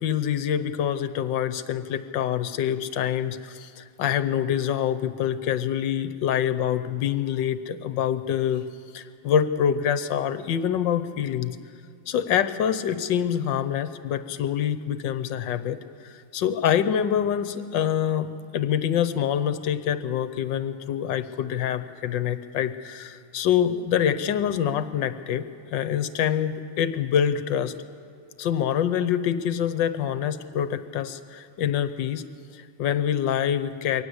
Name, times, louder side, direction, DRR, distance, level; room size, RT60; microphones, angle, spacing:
voice 1, 0.0-8.6 8.9-11.6 12.1-25.5 25.7-27.7 28.4-32.2 32.5-34.0, left 9 dB, 65° left, 11 dB, 1.4 m, -26 dB
23.0 x 18.0 x 8.0 m, 2.2 s
omnidirectional pair, 2.3 m